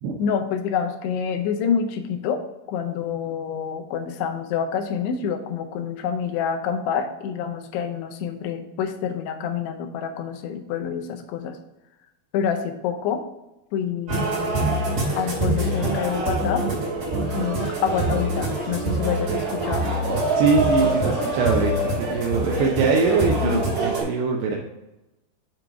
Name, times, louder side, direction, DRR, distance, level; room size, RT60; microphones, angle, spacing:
voice 1, 0.2-11.6 12.3-13.2 13.7-14.7 15.1-16.7 17.3-19.9 23.4-23.6, left 7 dB, 85° left, 5 dB, 2.8 m, -27 dB
sound 1, 14.1-24.0, right 2 dB, 40° right, 3.2 m, -24 dB
voice 2, 20.3-24.6, right 4 dB, 90° right, 0 dB, 2.8 m, -23 dB
7.7 x 3.9 x 4.6 m, 0.95 s
omnidirectional pair, 4.7 m